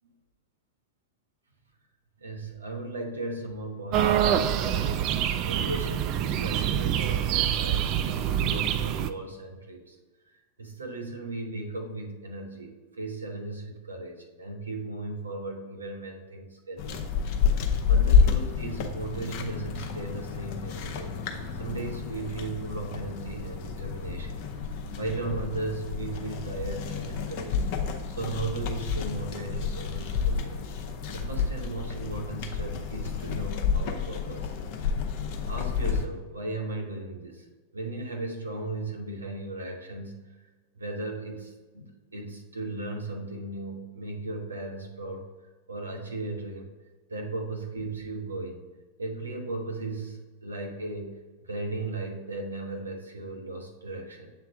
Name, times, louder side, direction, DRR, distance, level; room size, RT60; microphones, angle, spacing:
voice 1, 2.2-10.0 10.6-17.0 17.9-21.1 21.6-24.4 25.0-27.6 28.1-30.6 31.1-34.5 35.4-37.4 37.7-40.2 40.8-45.3 45.7-46.7 47.1-48.6 49.0-51.2 51.4-54.3, right 2 dB, 75° right, 1 dB, 1.1 m, -36 dB
sound 1, 3.9-9.1, right 10 dB, 40° right, 0.3 m, -26 dB
sound 2, 16.8-36.0, left 6 dB, 45° left, 0.7 m, -29 dB
7.6 x 3.5 x 3.6 m, 1.3 s
figure-of-eight pair, 90°, 0 cm